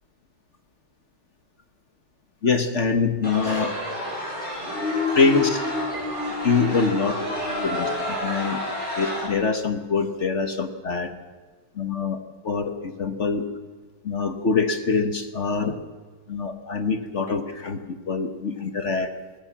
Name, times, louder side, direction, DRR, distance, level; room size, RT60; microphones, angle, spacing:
voice 1, 2.4-3.8 5.1-5.6 6.4-7.2 7.5-8.6 9.0-11.1 11.8-12.2 12.4-13.4 14.0-15.7 16.3-19.1, left 4 dB, 40° left, 8 dB, 1.3 m, -24 dB
sound 1, 3.2-9.3, left 1 dB, 20° left, 7.7 m, -29 dB
Piano, 5.9-7.2, right 4 dB, 20° right, 3.9 m, -45 dB
20.5 x 19.5 x 7.4 m, 1.4 s
omnidirectional pair, 2.3 m